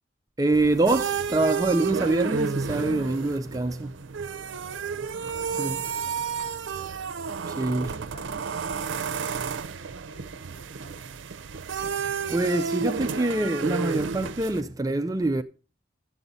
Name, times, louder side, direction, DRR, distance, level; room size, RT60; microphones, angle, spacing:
voice 1, 0.4-4.0 5.6-5.8 7.6-7.9 12.3-15.4, right 2 dB, 20° right, 0.4 m, -25 dB
sound 1, 0.5-14.6, right 6 dB, 85° right, 0.6 m, -31 dB
voice 2, 5.1-6.9 7.4-11.2, equal, 60° left, 5.5 m, -52 dB
12.5 x 7.8 x 4.0 m
head